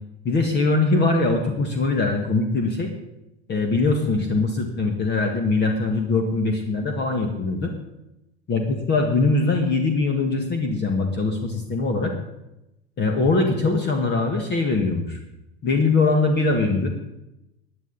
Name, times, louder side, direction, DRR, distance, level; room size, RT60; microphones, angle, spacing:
voice 1, 0.2-2.9 3.5-7.7 8.5-12.1 13.0-15.2 15.6-16.9, left 3 dB, 30° left, 4 dB, 1.8 m, -22 dB
17.5 x 10.0 x 4.1 m, 0.90 s
hypercardioid pair, 85°, 33 cm